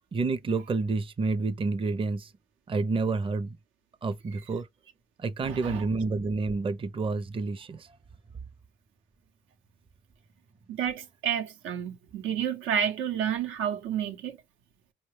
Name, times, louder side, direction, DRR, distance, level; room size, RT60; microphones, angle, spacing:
voice 1, 0.1-2.3 2.7-3.6 4.0-4.7 5.2-8.0, right 3 dB, 25° right, 0.5 m, -29 dB
voice 2, 5.4-5.9 10.7-14.4, right 8 dB, 90° right, 0.8 m, -30 dB
4.8 x 2.2 x 3.0 m
cardioid pair, 90°, 20 cm